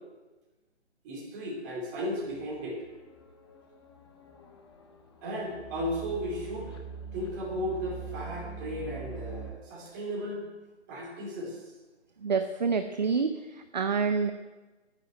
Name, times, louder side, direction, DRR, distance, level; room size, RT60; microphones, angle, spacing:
voice 1, 1.0-2.8 5.2-6.7 7.1-10.4 10.9-11.7, equal, 15° right, -3 dB, 2.6 m, -35 dB
sound 1, 2.3-9.5, right 5 dB, 20° left, 1.1 m, -44 dB
voice 2, 12.2-14.3, right 5 dB, 40° right, 8 dB, 0.6 m, -28 dB
10.5 x 9.7 x 7.8 m, 1.2 s
hypercardioid pair, 165°, 35 cm